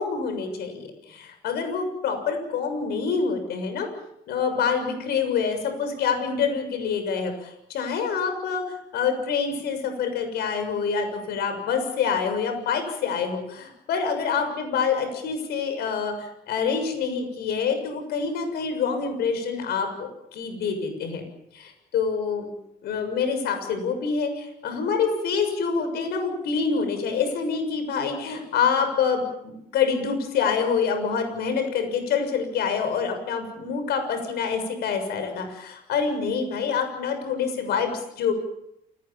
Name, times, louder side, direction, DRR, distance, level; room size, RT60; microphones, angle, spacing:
voice 1, 0.0-3.9 4.3-21.2 21.5-21.7 21.9-22.5 22.8-38.3, left 6 dB, 70° left, 7 dB, 6.9 m, -26 dB
29.5 x 20.0 x 7.4 m, 0.80 s
cardioid pair, 110°, 17 cm